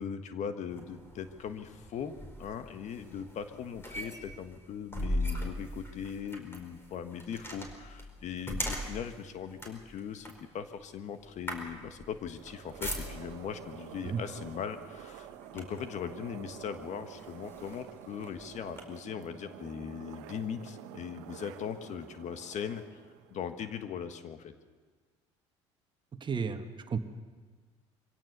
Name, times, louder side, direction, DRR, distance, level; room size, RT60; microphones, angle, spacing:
voice 1, 0.0-23.0 23.3-24.5, left 7 dB, 55° left, 9 dB, 1.5 m, -40 dB
sound 1, 0.7-13.5 14.4-14.6 15.0-16.0 16.6-16.7 17.2-18.8, left 1 dB, 15° left, 4.7 m, -40 dB
sound 2, 12.3-23.8, right 11 dB, 75° right, 1.1 m, -49 dB
voice 2, 26.2-27.0, right 6 dB, 30° right, 8 dB, 1.6 m, -33 dB
23.5 x 17.0 x 6.8 m, 1.5 s
hypercardioid pair, 65°, 15 cm